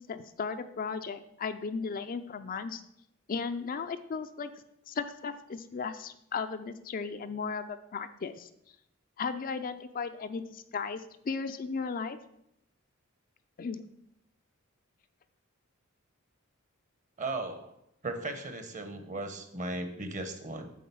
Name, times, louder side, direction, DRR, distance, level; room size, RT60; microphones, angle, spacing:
voice 1, 0.0-2.8 3.3-4.5 4.9-8.5 9.2-12.2 13.6-13.8, left 5 dB, 40° left, 9 dB, 0.4 m, -36 dB
voice 2, 17.2-17.8 18.0-20.7, right 2 dB, 35° right, 8 dB, 1.0 m, -36 dB
8.5 x 3.9 x 6.9 m, 0.77 s
head